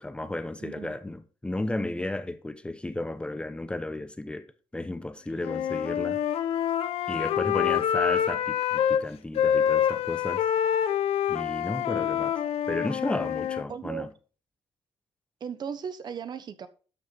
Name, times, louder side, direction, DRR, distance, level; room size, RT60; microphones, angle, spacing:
voice 1, 0.0-4.5 4.7-6.2 7.1-10.5 11.3-12.4 12.7-14.1, left 2 dB, 10° left, 0.8 m, -33 dB
voice 2, 0.6-1.0 7.5-7.8 13.7-14.1 15.4-16.7, right 7 dB, 45° right, 1.1 m, -37 dB
Wind instrument woodwind instrument, 5.4-9.0 9.4-13.6, left 9 dB, 75° left, 1.0 m, -26 dB
12.5 x 6.3 x 4.0 m
cardioid pair, 130°, 10 cm